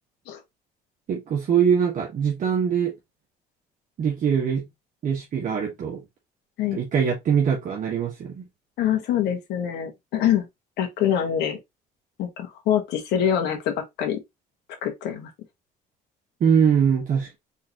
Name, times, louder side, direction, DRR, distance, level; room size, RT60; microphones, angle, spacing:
voice 1, 1.1-2.9 4.0-4.6 5.0-6.0 6.7-8.5 16.4-17.4, right 7 dB, 50° right, 1.3 m, -22 dB
voice 2, 8.8-10.5 10.8-11.6 12.2-14.2 14.8-15.3, left 9 dB, 80° left, 1.4 m, -25 dB
4.0 x 3.9 x 2.9 m
cardioid pair, 110°, 17 cm